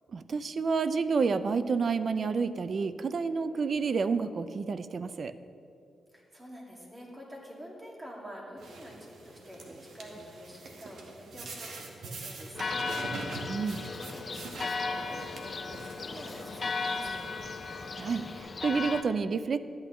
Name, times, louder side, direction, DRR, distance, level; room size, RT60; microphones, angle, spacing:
voice 1, 0.1-5.3 13.5-13.8 18.0-19.6, right 5 dB, 55° right, 13 dB, 0.4 m, -29 dB
voice 2, 6.1-12.8 13.5-17.2, equal, 20° right, -2 dB, 2.2 m, -47 dB
sound 1, 8.6-18.4, right 3 dB, 75° right, 1.1 m, -44 dB
Church bell, 12.5-19.0, left 4 dB, 45° left, 0.5 m, -36 dB
12.0 x 8.8 x 3.1 m, 2.6 s
cardioid pair, 75°, 0 cm